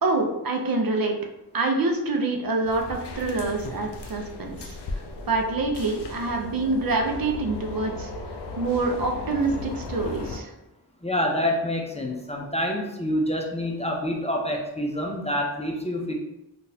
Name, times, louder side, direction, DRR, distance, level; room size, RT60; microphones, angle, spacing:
voice 1, 0.0-1.1 1.5-5.0 5.3-8.1 8.6-10.5, right 3 dB, 60° right, 2 dB, 0.6 m, -26 dB
sound 1, 2.6-10.4, left 2 dB, 75° left, 0.5 m, -36 dB
voice 2, 11.0-16.1, left 1 dB, 15° left, 0 dB, 0.5 m, -27 dB
3.8 x 2.4 x 2.7 m, 0.92 s
cardioid pair, 40°, 41 cm